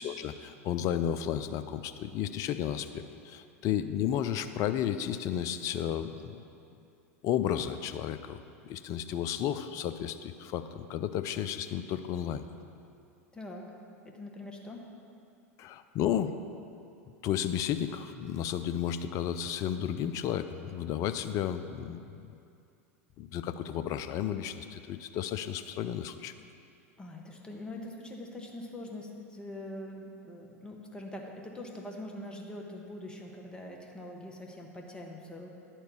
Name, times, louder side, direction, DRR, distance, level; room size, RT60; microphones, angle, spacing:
voice 1, 0.0-6.4 7.2-12.4 15.6-16.3 17.2-22.3 23.2-26.3, left 10 dB, 40° left, 10 dB, 0.4 m, -33 dB
voice 2, 13.3-13.7 14.0-14.9 27.0-35.5, left 1 dB, 10° left, 0 dB, 1.3 m, -43 dB
10.5 x 4.5 x 6.9 m, 2.5 s
hypercardioid pair, 95°, 8 cm